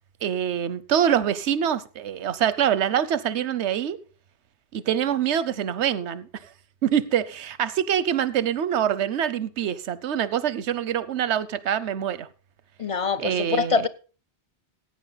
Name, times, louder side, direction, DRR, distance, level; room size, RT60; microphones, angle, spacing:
voice 1, 0.2-4.0 4.7-6.4 6.8-12.3 13.2-13.8, right 9 dB, 90° right, 1.0 m, -25 dB
voice 2, 12.8-13.9, left 5 dB, 35° left, 0.6 m, -24 dB
15.5 x 8.7 x 4.0 m
omnidirectional pair, 1.1 m